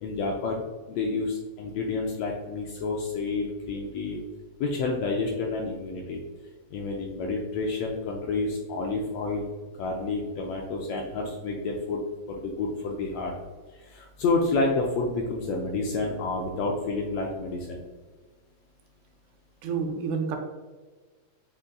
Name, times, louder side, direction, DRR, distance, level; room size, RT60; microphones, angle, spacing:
voice 1, 0.0-0.6 0.9-4.2 4.6-6.2 6.7-9.4 9.8-12.0 12.3-13.3 13.7-17.8, left 3 dB, 80° left, 0 dB, 1.5 m, -29 dB
voice 2, 19.6-20.4, right 5 dB, 85° right, 4 dB, 2.1 m, -29 dB
5.4 x 3.7 x 2.3 m, 1.4 s
omnidirectional pair, 3.4 m